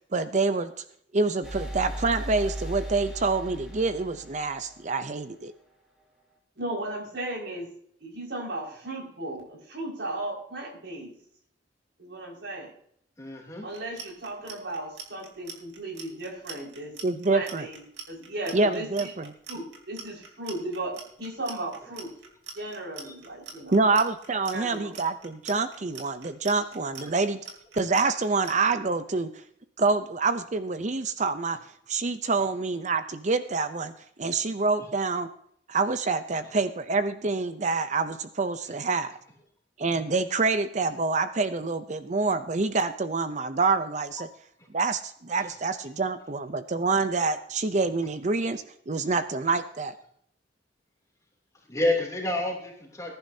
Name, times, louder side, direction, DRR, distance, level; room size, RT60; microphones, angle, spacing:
voice 1, 0.1-0.7 1.1-5.5 17.0-17.7 18.5-19.3 23.7-27.4 27.7-29.3 29.8-31.6 31.9-33.9 34.2-35.3 35.7-39.1 39.8-44.3 44.7-49.9, right 3 dB, 40° right, 11 dB, 0.6 m, -26 dB
sound 1, 1.4-5.2, right 1 dB, 5° right, 2.8 m, -37 dB
voice 2, 6.6-7.7 8.0-11.1 12.0-12.7 13.6-17.0 17.3-17.8 18.1-19.1 19.5-22.1 22.5-23.8 24.5-25.0, right 1 dB, 70° right, -1 dB, 5.4 m, -36 dB
voice 3, 13.2-13.7 23.0-23.1 51.7-53.1, left 1 dB, 20° left, -1 dB, 2.9 m, -28 dB
Clock, 13.7-28.5, right 6 dB, 90° right, 3.3 m, -42 dB
20.5 x 10.5 x 2.8 m, 0.67 s
head